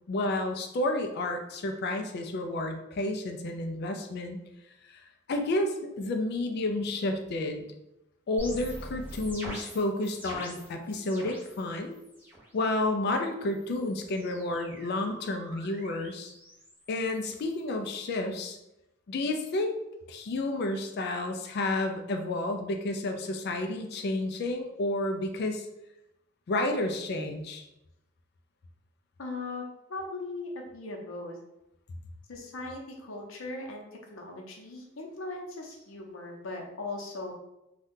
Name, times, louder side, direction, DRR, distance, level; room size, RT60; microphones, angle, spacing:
voice 1, 0.1-4.4 4.9-5.0 5.3-7.7 8.3-12.0 12.5-16.3 16.9-18.6 19.1-19.8 20.1-25.7 26.5-27.7, left 2 dB, 55° left, 5 dB, 0.4 m, -31 dB
sound 1, 8.4-11.6 11.9-12.5 13.5-17.6, equal, 10° right, 0.9 m, -44 dB
voice 2, 20.8-21.1 29.2-29.6 29.9-31.4 32.3-37.3, left 2 dB, 80° left, 1 dB, 0.7 m, -39 dB
2.6 x 2.3 x 3.6 m, 0.87 s
head